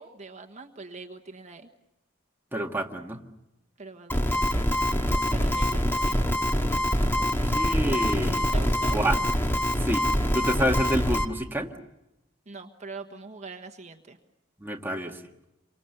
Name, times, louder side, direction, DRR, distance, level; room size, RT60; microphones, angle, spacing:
voice 1, 0.0-1.7 3.8-4.7 5.3-6.2 8.5-9.0 12.5-14.2, right 3 dB, 35° right, 5 dB, 1.4 m, -43 dB
voice 2, 2.5-3.2 7.2-8.5 8.9-9.2 9.8-10.1 10.3-11.7 14.6-15.1, equal, 10° right, 1 dB, 1.7 m, -28 dB
sound 1, 4.1-11.2, equal, 10° left, 1.9 m, -25 dB
28.5 x 25.0 x 6.7 m, 0.93 s
head